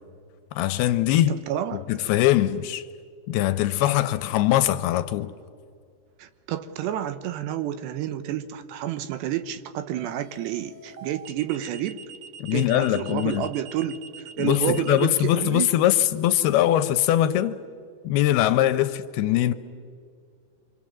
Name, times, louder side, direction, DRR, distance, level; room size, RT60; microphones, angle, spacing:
voice 1, 0.5-1.3 1.9-2.9 3.3-5.3 12.4-13.5 14.4-17.6 18.0-19.5, left 13 dB, 80° left, 2.5 m, -22 dB
voice 2, 1.3-1.9 6.2-12.0 12.5-14.0 14.4-15.7, right 11 dB, 90° right, 3.1 m, -29 dB
sound 1, 6.7-7.0 10.0-15.1, right 6 dB, 65° right, 1.8 m, -44 dB
26.0 x 25.5 x 7.4 m
omnidirectional pair, 4.9 m